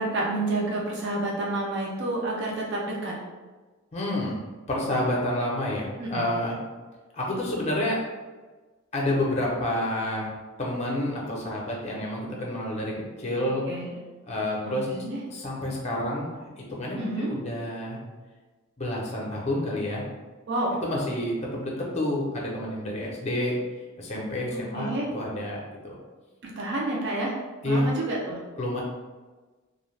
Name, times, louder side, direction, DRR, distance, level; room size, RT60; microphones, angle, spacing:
voice 1, 0.0-3.2 6.0-6.3 13.7-13.9 14.6-15.2 16.9-17.3 20.5-20.8 24.5-25.1 26.4-27.3 27.6-28.5, right 2 dB, 55° right, -3 dB, 0.5 m, -29 dB
voice 2, 3.9-4.4 4.7-6.6 7.1-8.0 8.9-10.3 10.6-13.6 14.3-14.9 15.3-18.0 18.8-20.1 20.8-23.6 24.0-24.9 25.1-26.0 27.6-27.9 28.6-28.8, left 1 dB, 30° left, -3 dB, 0.6 m, -29 dB
2.4 x 2.2 x 3.2 m, 1.3 s
head